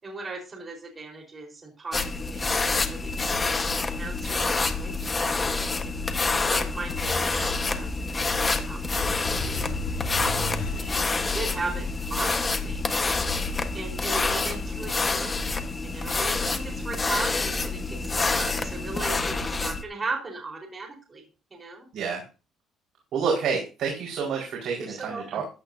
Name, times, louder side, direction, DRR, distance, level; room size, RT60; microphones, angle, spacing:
voice 1, 0.0-2.0 2.3-3.1 3.4-6.0 6.5-8.0 8.6-9.8 10.0-13.4 13.7-15.5 15.8-21.2 21.5-21.9 24.8-25.3, right 3 dB, 20° right, 0 dB, 4.2 m, -38 dB
sound 1, 1.9-19.8, left 3 dB, 20° left, 1.2 m, -27 dB
sound 2, 3.5-16.5, left 2 dB, 85° left, 4.9 m, -39 dB
voice 2, 23.1-25.5, right 5 dB, 60° right, -2 dB, 4.6 m, -28 dB
15.0 x 11.0 x 2.7 m, 0.33 s
cardioid pair, 155°, 0 cm